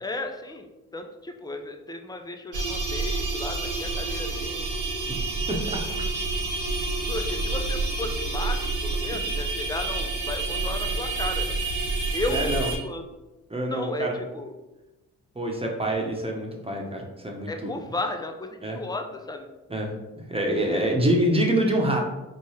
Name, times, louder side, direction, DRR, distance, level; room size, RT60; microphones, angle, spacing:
voice 1, 0.0-4.7 7.1-11.5 12.1-13.0 13.7-14.5 17.5-19.5 20.7-20.9, left 2 dB, 10° left, 5 dB, 0.6 m, -34 dB
sound 1, 2.5-12.8, right 3 dB, 75° right, 1.1 m, -28 dB
voice 2, 5.5-5.8 12.3-12.7 13.5-14.2 15.3-17.8 18.6-18.8 19.7-19.9 20.3-22.0, right 1 dB, 15° right, 0 dB, 1.1 m, -26 dB
4.5 x 3.0 x 2.9 m, 1.0 s
hypercardioid pair, 45°, 41 cm